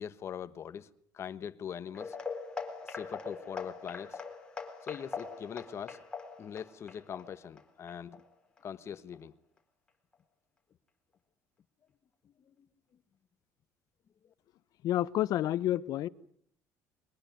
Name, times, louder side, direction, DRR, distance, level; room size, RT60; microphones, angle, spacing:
voice 1, 0.0-2.2 2.8-4.2 4.8-6.0 6.4-8.2 8.6-9.3 12.2-12.7 14.2-14.3, left 8 dB, 40° left, 1.3 m, -42 dB
sound 1, 1.9-8.6 8.9-9.2 9.6-9.7 10.1-10.2, left 4 dB, 10° left, 4.2 m, -42 dB
voice 2, 14.8-16.1, left 13 dB, 60° left, 0.9 m, -29 dB
22.5 x 20.0 x 9.4 m
cardioid pair, 125°, 7 cm